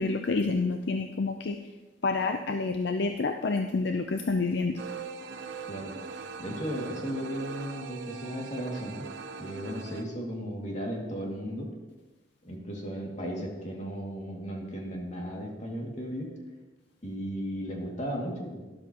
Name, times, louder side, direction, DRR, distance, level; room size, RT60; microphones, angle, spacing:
voice 1, 0.0-1.6 2.0-4.8, left 3 dB, 65° left, 6 dB, 0.5 m, -28 dB
sound 1, 4.8-10.0, right 5 dB, 85° right, 0.8 m, -41 dB
voice 2, 5.7-6.0 6.4-9.1 9.4-11.8 12.4-16.3 17.0-18.6, equal, 45° left, -1 dB, 2.2 m, -35 dB
12.5 x 11.5 x 2.9 m, 1.2 s
head